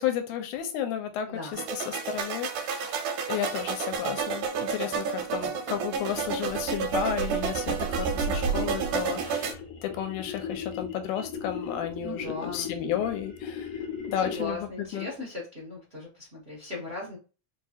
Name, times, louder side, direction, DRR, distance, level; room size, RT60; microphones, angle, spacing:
voice 1, 0.0-13.7 14.1-15.1, left 10 dB, 85° left, 2.1 m, -33 dB
voice 2, 1.3-1.6 12.0-12.7 14.2-17.2, left 2 dB, 65° right, 0.6 m, -38 dB
sound 1, 1.5-9.5, right 6 dB, 85° right, 2.1 m, -30 dB
sound 2, 6.1-14.7, left 6 dB, 65° left, 1.6 m, -39 dB
4.7 x 2.7 x 2.4 m
omnidirectional pair, 3.4 m